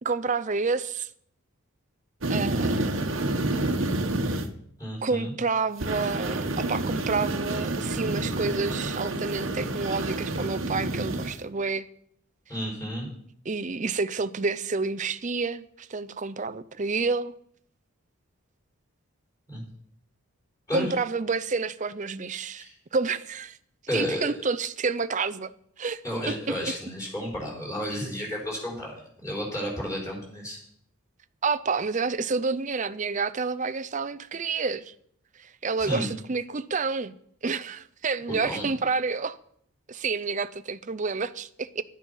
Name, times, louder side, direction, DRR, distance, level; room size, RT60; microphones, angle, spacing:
voice 1, 0.0-1.1 2.3-2.9 5.0-11.9 13.5-17.3 20.7-22.6 22.9-23.6 23.9-25.5 25.8-26.0 26.3-26.5 31.4-34.9 35.4-37.1 37.4-39.4 39.9-41.8, right 4 dB, 35° right, 0.5 m, -29 dB
sound 1, 2.2-4.4 5.8-11.3, right 2 dB, 60° right, 1.2 m, -29 dB
voice 2, 4.8-5.3 12.5-13.1 19.5-19.6 20.7-20.9 22.6-22.7 23.9-24.3 26.0-30.6 35.8-36.1 38.4-38.7, equal, 15° left, 5.1 m, -32 dB
12.0 x 10.0 x 5.5 m
head